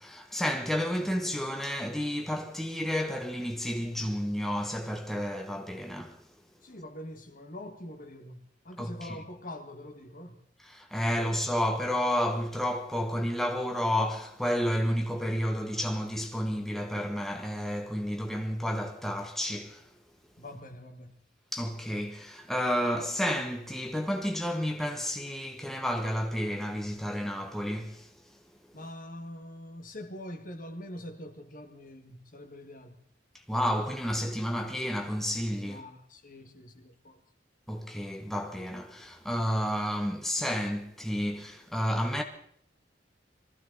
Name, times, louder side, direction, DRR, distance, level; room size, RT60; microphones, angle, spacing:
voice 1, 0.0-6.2 8.8-9.2 10.6-19.9 21.5-28.1 33.5-35.8 37.7-42.2, equal, ahead, 1.2 m, -31 dB
voice 2, 6.6-10.4 20.4-21.2 28.7-33.0 35.6-37.2, left 1 dB, 50° left, 1.8 m, -44 dB
24.0 x 14.5 x 4.0 m
head